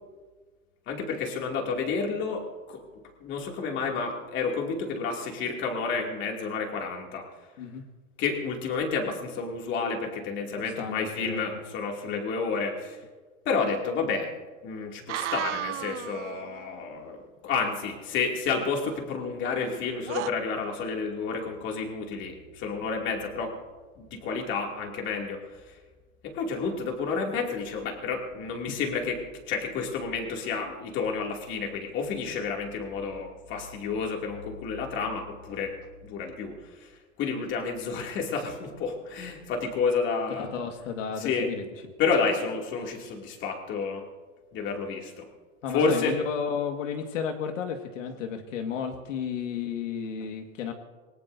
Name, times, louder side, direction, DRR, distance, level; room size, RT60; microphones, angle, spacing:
voice 1, 0.9-2.8 3.2-7.3 8.2-13.0 13.4-14.3 14.6-23.5 24.0-25.4 26.2-35.8 36.0-36.9 37.2-40.5 41.2-41.5 42.0-44.1 44.5-45.3 45.7-46.1, left 5 dB, 30° left, 1 dB, 2.6 m, -30 dB
voice 2, 10.8-11.4 12.1-12.2 28.7-28.8 40.4-41.6 45.6-50.7, left 7 dB, 70° left, 4 dB, 1.9 m, -32 dB
sound 1, 15.1-16.7 18.6-19.7 20.0-20.3, right 14 dB, 65° right, 0.7 m, -35 dB
27.0 x 19.0 x 2.7 m, 1.4 s
supercardioid pair, 150°, 39 cm